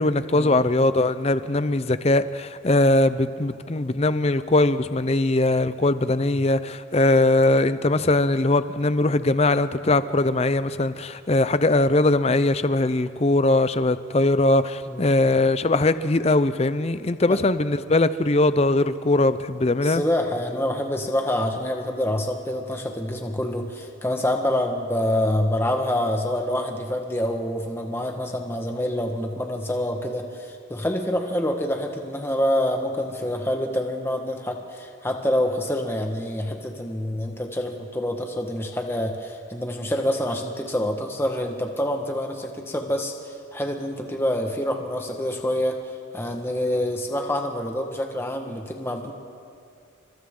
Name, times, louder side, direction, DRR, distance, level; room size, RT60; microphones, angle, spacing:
voice 1, 0.0-20.0, left 2 dB, 30° left, 13 dB, 0.6 m, -21 dB
voice 2, 19.8-45.8 46.1-49.1, left 1 dB, 10° left, 2 dB, 1.5 m, -26 dB
29.5 x 24.5 x 3.8 m, 2.4 s
head